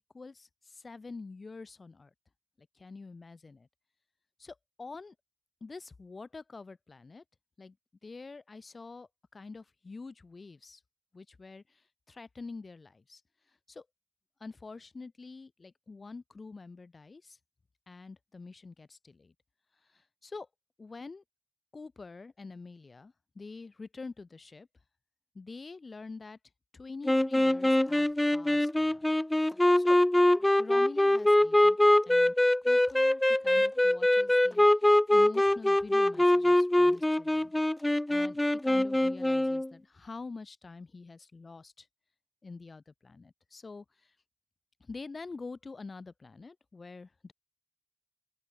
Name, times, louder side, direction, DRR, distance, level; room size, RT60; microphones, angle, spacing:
voice 1, 0.1-2.1 2.6-3.7 4.4-5.1 5.6-7.2 7.6-7.8 8.0-10.8 11.1-13.2 13.5-13.9 14.4-17.4 17.9-19.3 19.8-20.5 20.8-21.2 21.7-24.7 25.3-26.4 26.7-29.0 29.4-30.0 30.6-31.8 32.1-32.3 32.6-37.5 38.1-41.9 42.4-44.1 44.8-47.3, left 3 dB, 50° left, 3.3 m, -46 dB
sound 1, 27.1-39.7, left 1 dB, 15° left, 0.5 m, -24 dB
open air
wide cardioid pair, 80°, 0 cm